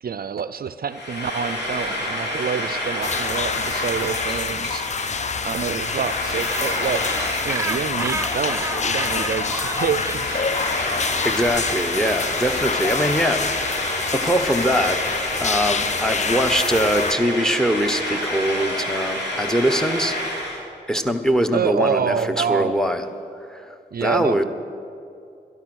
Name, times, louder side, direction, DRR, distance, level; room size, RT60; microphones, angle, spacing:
voice 1, 0.0-4.9 5.4-7.0 7.4-10.4 11.0-11.2 21.5-22.8 23.9-24.4, right 7 dB, 60° right, 14 dB, 0.4 m, -27 dB
Frying (food), 0.9-20.6, left 1 dB, 75° left, 3.4 m, -28 dB
sound 1, 3.0-17.1, left 5 dB, 40° left, 0.4 m, -27 dB
Gull seagull, 6.5-11.5, right 2 dB, 15° right, 0.8 m, -31 dB
voice 2, 11.2-15.0 15.4-20.2 20.9-23.0 23.4-23.7 24.0-24.4, equal, 5° left, 8 dB, 1.0 m, -22 dB
12.5 x 11.0 x 6.2 m, 2.5 s
cardioid pair, 50°, 18 cm